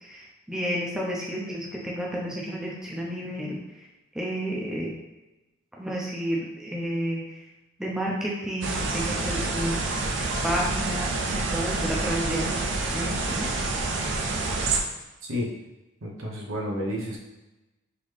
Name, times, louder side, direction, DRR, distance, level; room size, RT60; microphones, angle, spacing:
voice 1, 0.0-3.6 4.1-4.9 5.8-7.2 7.8-10.1 10.4-12.6 12.9-13.5, equal, 5° right, -4 dB, 0.5 m, -31 dB
sound 1, 8.6-14.8, right 3 dB, 60° right, 0.5 m, -28 dB
voice 2, 15.2-15.5 16.0-17.2, equal, 85° right, -2 dB, 0.9 m, -31 dB
3.9 x 2.9 x 3.3 m, 1.0 s
head